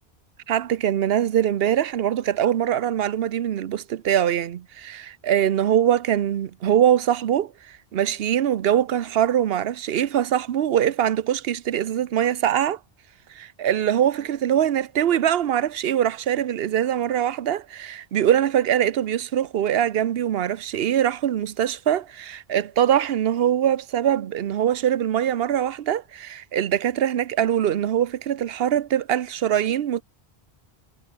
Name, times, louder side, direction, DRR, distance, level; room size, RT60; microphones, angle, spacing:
voice 1, 0.5-12.8 13.3-30.0, right 10 dB, 70° right, 0.9 m, -23 dB
omnidirectional pair, 1.0 m